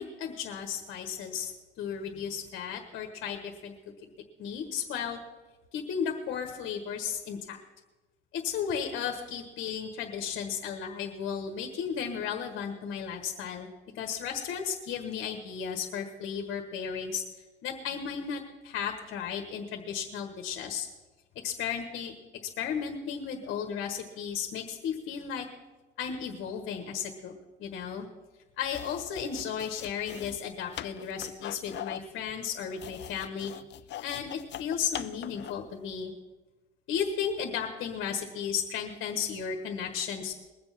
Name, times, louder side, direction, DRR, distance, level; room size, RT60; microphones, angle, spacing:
voice 1, 0.0-3.7 4.0-4.1 4.4-5.2 5.7-7.6 8.3-13.7 13.9-17.2 17.6-20.9 21.4-22.1 22.6-25.4 26.0-27.3 27.6-28.1 28.6-33.5 34.0-36.1 36.9-40.3, left 7 dB, 90° left, 4 dB, 1.4 m, -34 dB
sound 1, 28.6-35.7, left 12 dB, 65° left, 0.5 m, -42 dB
21.0 x 7.2 x 5.8 m, 1.2 s
cardioid pair, 90°, 20 cm